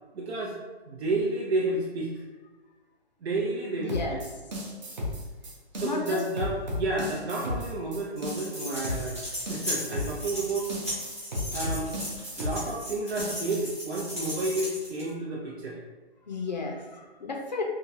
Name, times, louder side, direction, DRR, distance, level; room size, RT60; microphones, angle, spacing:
voice 1, 0.1-0.6 0.9-2.2 3.2-4.0 5.7-10.7 11.5-11.9 12.4-15.8, right 2 dB, 85° right, -4 dB, 0.7 m, -31 dB
voice 2, 3.7-4.2 5.8-6.2 16.3-17.6, left 3 dB, 45° left, 0 dB, 0.4 m, -33 dB
sound 1, 3.9-13.8, left 1 dB, 45° right, 0.7 m, -35 dB
sound 2, 8.2-15.1, left 1 dB, 15° right, 0.4 m, -37 dB
2.9 x 2.3 x 2.6 m, 1.2 s
hypercardioid pair, 170°, 32 cm